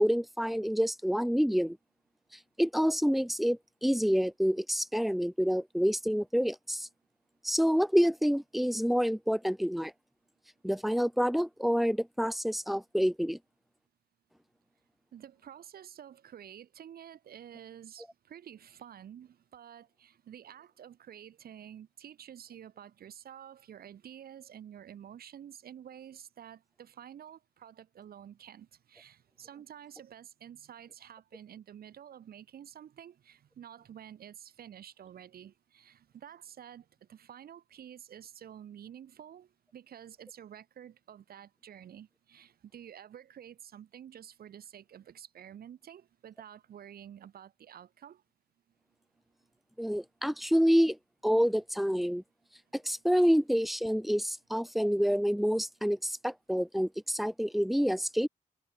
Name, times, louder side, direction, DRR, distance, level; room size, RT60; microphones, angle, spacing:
voice 1, 0.0-1.8 2.6-6.9 7.4-9.9 10.6-13.4 49.8-51.0 51.2-52.2 52.7-58.3, equal, ahead, 0.7 m, -28 dB
voice 2, 15.1-48.2, right 9 dB, 85° right, 4.5 m, -50 dB
cardioid pair, 100°, 15 cm